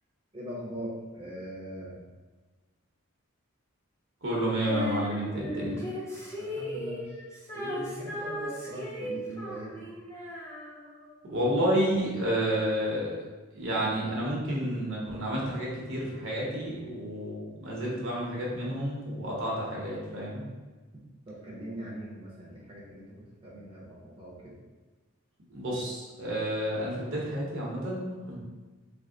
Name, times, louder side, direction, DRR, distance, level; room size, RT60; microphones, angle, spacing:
voice 1, 0.3-2.0 6.4-7.2 7.5-9.9 21.3-24.5, equal, 25° right, -7 dB, 0.7 m, -41 dB
voice 2, 4.2-5.8 11.3-13.2 13.5-20.4 25.5-28.3, equal, 60° right, -4 dB, 0.9 m, -30 dB
Female singing, 4.7-11.1, equal, 15° left, 0.5 m, -37 dB
3.3 x 2.0 x 3.7 m, 1.3 s
head